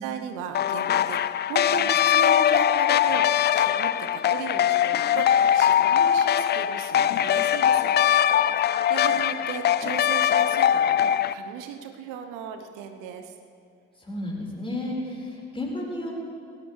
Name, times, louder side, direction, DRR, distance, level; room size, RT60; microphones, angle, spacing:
voice 1, 0.0-7.9 8.6-13.3, right 7 dB, 65° right, 7 dB, 0.9 m, -36 dB
sound 1, 0.5-11.3, left 10 dB, 30° left, 0.4 m, -21 dB
voice 2, 14.0-16.1, left 1 dB, 15° left, -2 dB, 4.7 m, -32 dB
20.0 x 17.0 x 3.3 m, 2.4 s
figure-of-eight pair, 40°, 34 cm